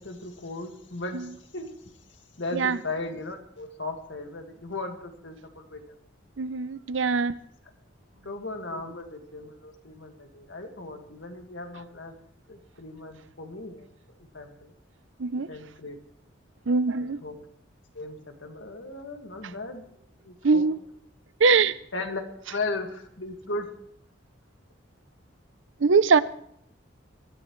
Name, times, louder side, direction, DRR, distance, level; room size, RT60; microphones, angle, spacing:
voice 1, 0.0-1.7 2.4-6.0 8.2-12.2 12.5-13.9 14.3-14.7 15.5-16.0 17.2-17.4 17.9-19.8 20.2-20.7 21.9-22.2 22.5-23.7, left 2 dB, 70° left, 1.9 m, -36 dB
voice 2, 6.4-7.4 15.2-15.5 16.7-17.2 20.4-20.8 21.4-21.8 25.8-26.2, right 4 dB, 75° right, 0.6 m, -22 dB
22.5 x 14.0 x 3.2 m
head